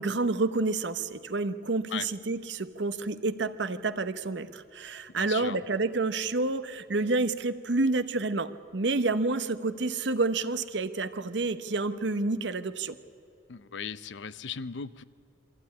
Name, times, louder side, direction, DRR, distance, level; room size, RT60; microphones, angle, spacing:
voice 1, 0.0-13.0, right 3 dB, 70° right, 11 dB, 0.9 m, -29 dB
voice 2, 5.2-5.6 13.5-15.0, left 6 dB, 75° left, 16 dB, 0.6 m, -37 dB
24.0 x 14.5 x 9.6 m, 2.6 s
head